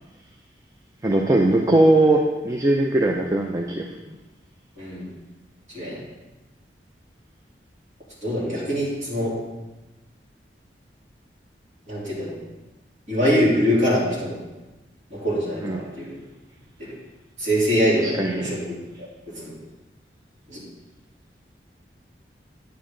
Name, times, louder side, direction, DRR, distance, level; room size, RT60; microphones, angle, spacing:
voice 1, 1.0-3.9 15.6-15.8 18.0-18.6, right 1 dB, 20° right, 1 dB, 0.5 m, -20 dB
voice 2, 8.2-9.3 11.9-12.4 13.1-14.4 15.1-16.2 16.8-16.9 17.4-18.7 19.3-19.6 20.5-20.6, equal, 40° right, -7 dB, 3.1 m, -23 dB
9.4 x 6.4 x 3.8 m, 1.1 s
head